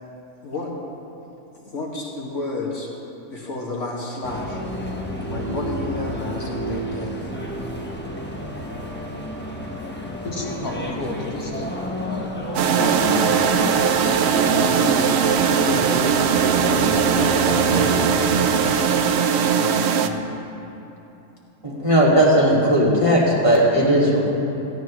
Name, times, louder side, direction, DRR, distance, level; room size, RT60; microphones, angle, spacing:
voice 1, 0.4-0.7 1.7-2.9 3.3-4.6 5.3-7.2 12.8-13.3 13.6-13.9 14.4-14.9 15.7-18.8 19.5-20.0, left 2 dB, 55° left, -3 dB, 2.2 m, -31 dB
sound 1, 4.2-19.0, equal, 10° left, 1.1 m, -31 dB
voice 2, 10.2-11.7 12.0-12.4 13.0-13.3 19.9-20.2, left 2 dB, 85° left, -3 dB, 2.4 m, -31 dB
sound 2, 12.5-20.1, right 7 dB, 60° right, 0.8 m, -19 dB
voice 3, 21.6-24.3, right 1 dB, 20° right, -5 dB, 2.5 m, -17 dB
17.0 x 15.5 x 3.2 m, 2.9 s
omnidirectional pair, 1.5 m